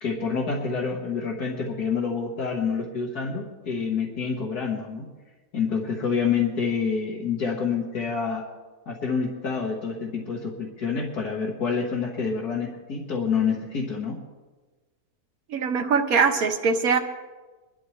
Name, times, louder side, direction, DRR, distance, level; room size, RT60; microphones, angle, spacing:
voice 1, 0.0-5.1 5.5-8.4 8.9-14.2, left 5 dB, 80° left, -3 dB, 2.1 m, -27 dB
voice 2, 15.5-17.0, right 5 dB, 65° right, 5 dB, 1.6 m, -22 dB
23.5 x 12.5 x 3.3 m, 1.3 s
omnidirectional pair, 1.6 m